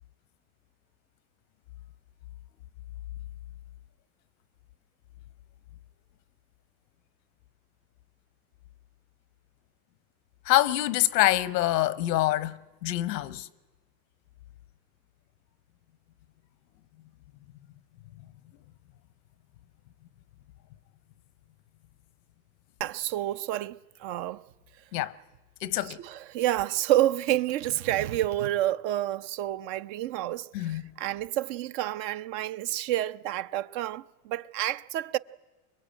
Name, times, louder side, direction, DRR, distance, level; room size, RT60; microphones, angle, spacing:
voice 1, 10.5-13.5 24.9-25.1 25.6-26.0 30.5-30.8, left 15 dB, 90° left, 1.0 m, -25 dB
voice 2, 22.8-24.4 25.9-35.2, right 14 dB, 65° right, 0.8 m, -29 dB
24.5 x 22.0 x 9.0 m
supercardioid pair, 100°, 48 cm